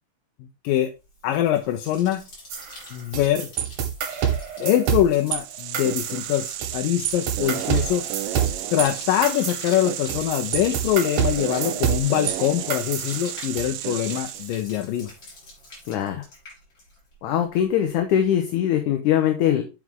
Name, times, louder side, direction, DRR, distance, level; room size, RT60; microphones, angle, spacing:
voice 1, 0.4-0.9 1.2-2.2 2.9-3.5 4.6-8.0 8.7-15.1, left 12 dB, 90° left, 4 dB, 2.5 m, -23 dB
Bathtub (filling or washing), 1.1-17.2 17.4-18.0, left 2 dB, 35° left, 4.5 m, -44 dB
sound 1, 2.5-5.4 5.7-6.8 7.1-12.4 12.7-13.7, right 9 dB, 70° right, 2.7 m, -27 dB
sound 2, 5.1-14.7, right 14 dB, 85° right, 2.2 m, -33 dB
voice 2, 15.9-16.2 17.2-19.6, left 10 dB, 70° left, 5 dB, 2.3 m, -22 dB
7.9 x 6.3 x 3.6 m, 0.26 s
omnidirectional pair, 3.8 m